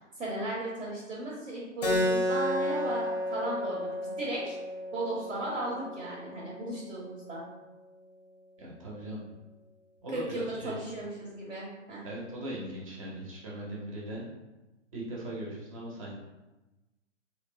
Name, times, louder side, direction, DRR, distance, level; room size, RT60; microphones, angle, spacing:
voice 1, 0.2-4.6 4.9-7.4 10.1-12.0, right 1 dB, 85° right, -5 dB, 0.8 m, -36 dB
Keyboard (musical), 1.8-6.9, equal, 35° left, 0.5 m, -32 dB
voice 2, 8.6-9.2 10.0-10.8 12.0-14.2 14.9-16.1, right 1 dB, 30° right, -4 dB, 0.5 m, -39 dB
2.9 x 2.0 x 2.5 m, 1.1 s
figure-of-eight pair, 125°, 37 cm